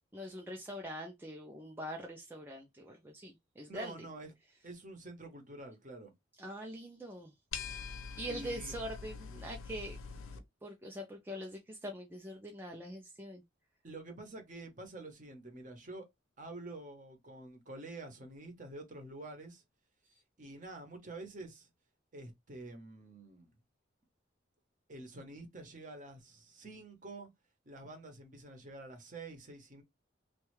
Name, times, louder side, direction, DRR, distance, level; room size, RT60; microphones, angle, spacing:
voice 1, 0.0-4.1 6.4-7.3 8.2-10.0 10.6-13.4, equal, 10° right, 0.4 m, -43 dB
voice 2, 3.7-4.3 4.6-6.1 8.2-8.7 13.8-16.1 16.4-19.6 20.4-21.7 22.1-23.5 24.9-27.3 27.7-29.8, right 2 dB, 40° right, 0.9 m, -48 dB
sound 1, 7.5-10.4, left 5 dB, 90° left, 0.6 m, -44 dB
3.2 x 2.3 x 3.1 m
head